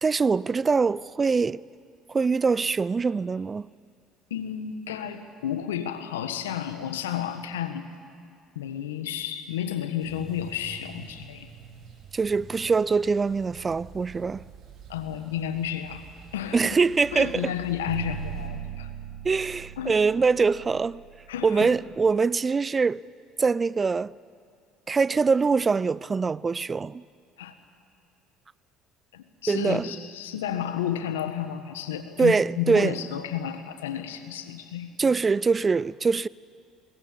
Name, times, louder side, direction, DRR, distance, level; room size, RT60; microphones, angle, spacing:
voice 1, 0.0-1.6 2.1-3.7 12.1-14.4 16.5-17.5 19.2-21.0 21.4-23.0 23.4-24.1 24.9-27.0 29.5-30.0 32.2-32.9 35.0-36.3, right 4 dB, 30° right, 0.5 m, -23 dB
voice 2, 4.3-7.9 8.5-11.5 14.9-16.0 16.3-16.8 17.1-18.9 19.8-20.0 21.3-21.7 27.4-27.5 29.1-34.9, left 9 dB, 85° left, 1.4 m, -32 dB
sound 1, 10.0-18.5, right 5 dB, 50° right, 4.5 m, -48 dB
sound 2, 17.9-22.0, right 9 dB, 85° right, 1.6 m, -38 dB
22.0 x 19.0 x 8.6 m
hypercardioid pair, 65°, 0 cm